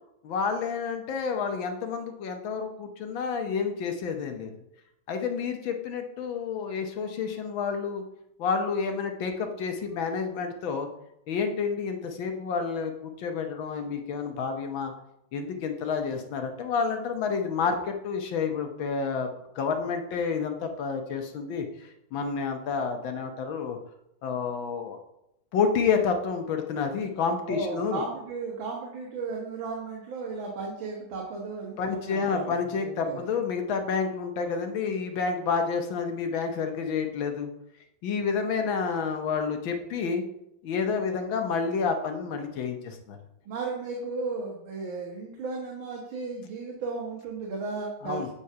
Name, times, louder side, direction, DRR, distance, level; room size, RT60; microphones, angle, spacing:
voice 1, 0.2-4.5 5.1-8.0 8.4-10.9 11.3-12.9 13.2-14.9 15.3-19.3 19.5-23.8 24.2-25.0 25.5-28.0 31.8-37.5 38.0-40.2 40.6-43.2 48.0-48.3, left 5 dB, 75° left, 5 dB, 1.6 m, -29 dB
voice 2, 27.5-32.5 32.8-33.2 43.5-48.3, right 4 dB, 75° right, -2 dB, 1.9 m, -35 dB
8.4 x 3.8 x 5.6 m, 0.82 s
omnidirectional pair, 2.2 m